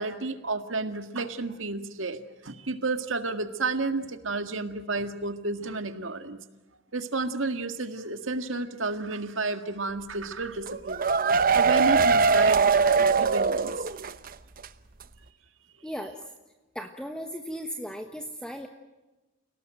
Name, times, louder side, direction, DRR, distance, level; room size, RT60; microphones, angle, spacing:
voice 1, 0.0-6.4 6.9-11.0 11.5-12.7 13.2-13.9, right 3 dB, 85° right, 9 dB, 1.9 m, -31 dB
sound 1, 10.7-14.3 14.6-14.7 15.0-15.1, right 5 dB, 45° right, 0.9 m, -22 dB
voice 2, 15.8-16.2 16.7-18.7, equal, 5° left, 5 dB, 1.3 m, -36 dB
29.0 x 18.0 x 9.0 m, 1.1 s
head